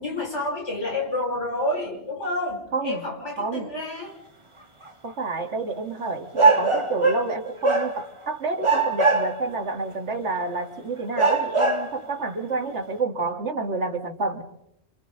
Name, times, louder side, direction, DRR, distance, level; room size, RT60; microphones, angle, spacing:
voice 1, 0.0-4.2, left 2 dB, 90° left, -1 dB, 5.9 m, -29 dB
voice 2, 2.7-3.1 3.4-3.7 5.0-14.4, right 3 dB, 80° right, 5 dB, 2.3 m, -29 dB
sound 1, 4.9-5.0 6.3-7.4 7.6-8.2 8.6-9.6 10.3-10.4 11.2-12.0, right 3 dB, 25° right, 1.7 m, -21 dB
28.0 x 27.0 x 3.9 m, 0.76 s
omnidirectional pair, 1.2 m